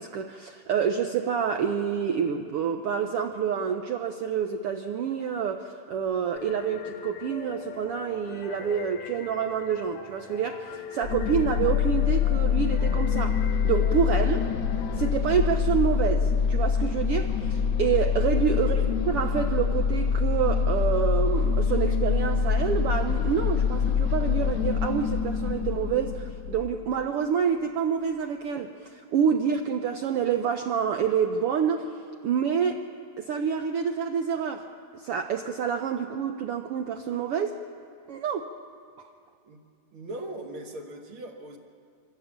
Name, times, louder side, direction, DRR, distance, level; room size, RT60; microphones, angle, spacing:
voice 1, 0.0-13.4 13.6-14.5 14.9-31.9 32.2-32.8 33.2-34.7 34.9-37.6 38.1-38.5, right 7 dB, 75° right, 6 dB, 1.3 m, -27 dB
sound 1, 6.4-15.1, left 7 dB, 85° left, 2.7 m, -42 dB
sound 2, 11.0-26.9, left 6 dB, 60° left, 1.4 m, -25 dB
voice 2, 18.6-18.9 39.4-39.6 39.9-41.6, right 1 dB, 50° right, 3 dB, 1.8 m, -39 dB
25.0 x 15.0 x 7.2 m, 2.3 s
omnidirectional pair, 3.5 m